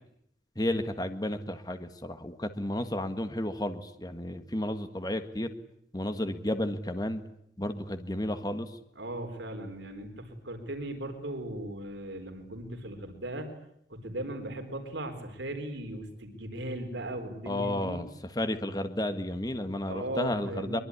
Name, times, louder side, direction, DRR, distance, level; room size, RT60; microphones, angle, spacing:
voice 1, 0.5-5.5 5.9-7.2 7.6-8.8 17.5-20.8, left 1 dB, 20° left, 8 dB, 1.6 m, -32 dB
voice 2, 9.0-13.5 13.9-18.0 19.9-20.8, right 1 dB, 75° right, 5 dB, 4.3 m, -37 dB
23.5 x 23.0 x 9.9 m, 0.72 s
head